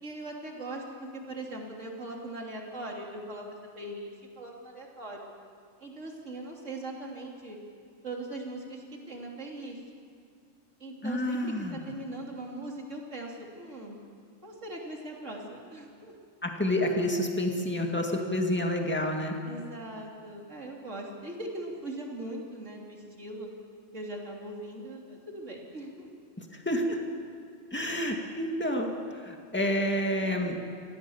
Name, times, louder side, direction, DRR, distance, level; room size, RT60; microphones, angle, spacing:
voice 1, 0.0-4.1 4.4-5.3 5.8-7.6 8.0-9.8 10.8-14.0 14.4-16.1 19.5-23.5 23.9-26.1, right 1 dB, 75° right, -1 dB, 3.6 m, -40 dB
voice 2, 11.0-11.8 16.4-19.3 26.5-27.0 27.7-30.6, left 1 dB, 10° left, 2 dB, 2.1 m, -29 dB
26.0 x 17.0 x 7.3 m, 2.3 s
omnidirectional pair, 1.3 m